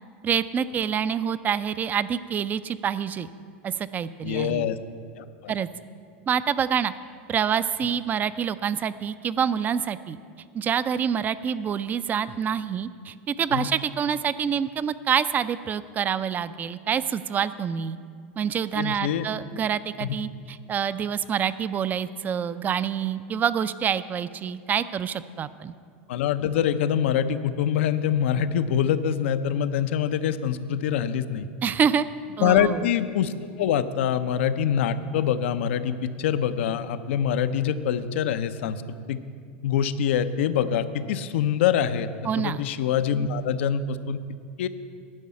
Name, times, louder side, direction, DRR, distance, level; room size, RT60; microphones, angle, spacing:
voice 1, 0.2-3.3 3.6-4.7 5.5-5.7 6.3-6.9 7.3-10.2 10.5-18.0 18.4-25.7 31.6-32.1 32.4-32.8 42.2-42.6, right 8 dB, 25° right, 15 dB, 0.4 m, -26 dB
voice 2, 4.2-4.8 5.2-5.5 13.5-13.7 18.7-19.3 20.0-20.2 26.1-31.5 32.4-39.2 39.6-42.1 42.4-44.2 44.6-44.7, left 9 dB, 75° left, 12 dB, 0.5 m, -25 dB
11.0 x 5.5 x 8.5 m, 2.2 s
hypercardioid pair, 115°, 7 cm